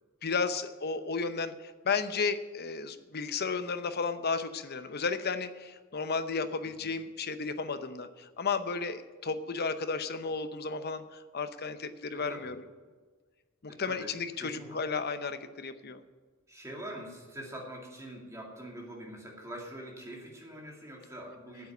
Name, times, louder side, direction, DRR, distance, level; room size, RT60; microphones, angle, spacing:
voice 1, 0.2-12.5 13.6-16.0, left 4 dB, 50° left, 10 dB, 0.8 m, -33 dB
voice 2, 6.6-7.0 12.1-12.6 13.7-14.1 14.4-14.8 16.5-21.7, right 1 dB, 15° right, -1 dB, 2.4 m, -44 dB
9.4 x 8.4 x 9.1 m, 1.5 s
head